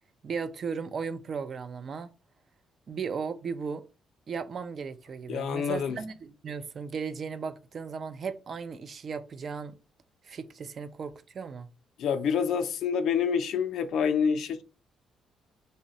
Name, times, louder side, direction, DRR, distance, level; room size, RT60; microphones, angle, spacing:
voice 1, 0.2-2.1 2.9-3.8 4.3-9.8 10.2-11.7, right 5 dB, 50° right, 0.4 m, -36 dB
voice 2, 5.3-6.0 12.0-14.6, left 7 dB, 75° left, 0.4 m, -27 dB
2.7 x 2.1 x 3.8 m
cardioid pair, 90°, 0 cm